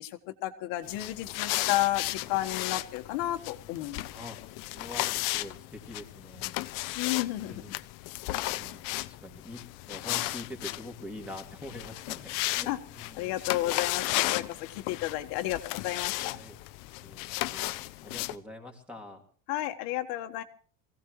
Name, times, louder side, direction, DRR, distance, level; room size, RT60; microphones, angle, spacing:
voice 1, 0.0-4.0 6.9-7.7 12.7-12.8 13.2-14.4 14.7-16.4 19.5-20.4, left 15 dB, 90° left, 6 dB, 1.5 m, -32 dB
sound 1, 0.8-18.4, left 19 dB, 65° left, 0.7 m, -35 dB
voice 2, 4.7-6.6 7.4-7.8 8.5-9.6 9.9-13.4 16.2-16.6 17.0-19.2, left 1 dB, 5° right, 2 dB, 2.4 m, -45 dB
25.0 x 16.5 x 3.1 m, 0.42 s
cardioid pair, 175°, 34 cm